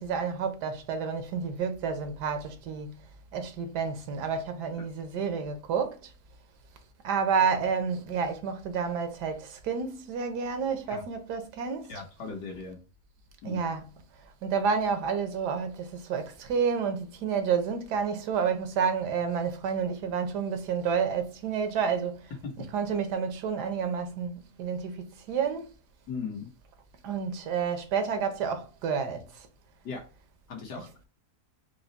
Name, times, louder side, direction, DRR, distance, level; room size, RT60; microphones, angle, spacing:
voice 1, 0.0-3.0 3.3-6.1 7.0-11.9 13.4-13.8 14.4-22.3 22.6-25.7 27.0-29.5 30.7-30.9, right 6 dB, 90° right, 1.4 m, -30 dB
voice 2, 11.9-12.8 13.4-13.6 26.1-26.5 29.8-30.0 30.5-31.1, left 5 dB, 90° left, 1.8 m, -38 dB
4.8 x 2.1 x 3.9 m
omnidirectional pair, 1.7 m